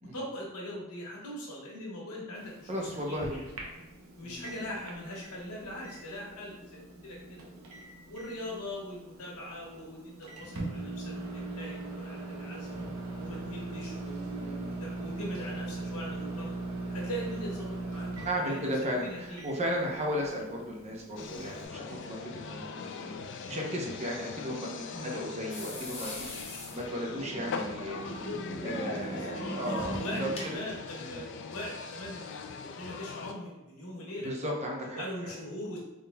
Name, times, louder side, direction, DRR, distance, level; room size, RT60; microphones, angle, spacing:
voice 1, 0.0-2.7 3.1-3.5 4.2-7.5 8.1-11.1 11.6-12.7 13.2-16.5 16.9-18.7 19.0-19.4 24.9-25.3 28.9-34.3 34.9-35.8, left 1 dB, 75° left, -4 dB, 1.2 m, -41 dB
Microwave oven, 2.3-21.7, right 2 dB, 65° right, 0.7 m, -41 dB
voice 2, 2.7-3.4 4.2-4.6 14.4-14.7 18.2-23.1 23.5-26.1 26.4-28.0 28.6-30.3 31.0-31.2 34.2-35.3, equal, 30° right, -1 dB, 0.6 m, -35 dB
sound 1, 21.2-33.3, left 5 dB, 55° left, 0.3 m, -41 dB
sound 2, 25.5-30.6, right 1 dB, 25° left, 0.9 m, -40 dB
3.8 x 3.7 x 2.2 m, 0.99 s
head